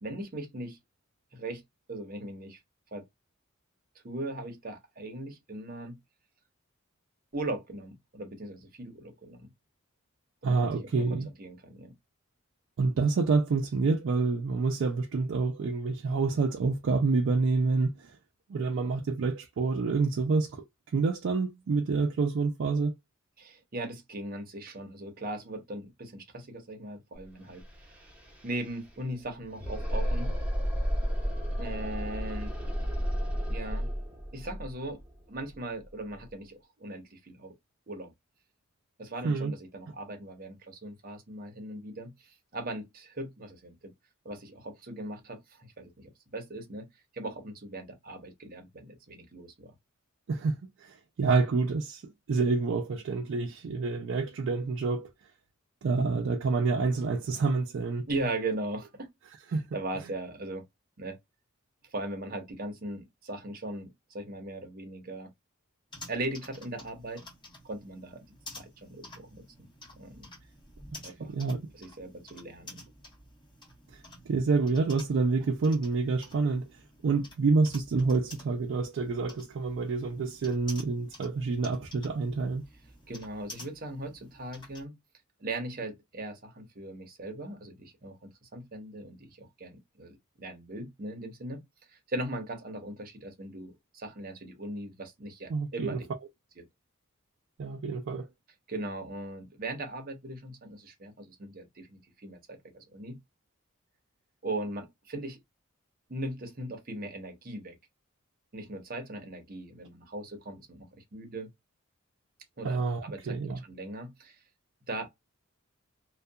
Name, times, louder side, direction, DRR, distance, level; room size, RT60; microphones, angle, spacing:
voice 1, 0.0-0.8 1.3-1.6 1.9-2.6 2.9-3.0 4.0-6.0 7.3-9.5 10.4-11.9 23.4-27.6 27.9-28.1 28.4-30.3 31.6-32.5 33.5-33.9 34.3-35.0 35.3-37.5 37.9-38.1 39.0-43.9 44.2-46.9 47.1-49.7 58.1-59.1 59.7-60.6 61.0-61.2 61.9-65.3 66.1-67.3 67.6-68.2 68.6-69.7 69.9-70.3 71.0-71.3 71.7-72.8 83.1-85.0 85.4-91.6 91.9-96.1 96.6-96.7 98.7-103.2 104.4-105.4 106.1-107.7 108.5-111.5 112.6-114.4 114.9-115.1, right 2 dB, 45° right, 0.8 m, -39 dB
voice 2, 10.4-11.3 12.8-18.2 18.5-20.6 20.9-22.9 39.2-39.5 50.3-55.1 55.8-58.1 59.5-59.6 71.2-71.7 73.9-74.0 74.3-76.7 77.0-82.6 95.5-96.0 97.6-98.3 112.6-113.6, right 4 dB, 60° right, 0.4 m, -28 dB
sound 1, 27.2-27.3 27.5-36.3, equal, 5° right, 0.9 m, -33 dB
sound 2, 65.9-84.8, left 1 dB, 20° left, 1.2 m, -51 dB
2.6 x 2.3 x 2.2 m
head